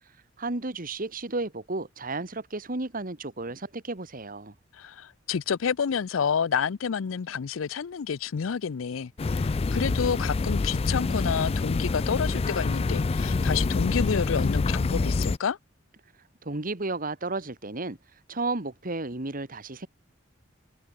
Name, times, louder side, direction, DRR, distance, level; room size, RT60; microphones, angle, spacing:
voice 1, 0.4-4.5 16.4-18.0 18.3-19.9, right 2 dB, 45° right, 1.7 m, -33 dB
voice 2, 4.7-15.6, left 6 dB, 85° left, 0.5 m, -29 dB
sound 1, 9.2-15.4, left 3 dB, 30° left, 0.4 m, -26 dB
head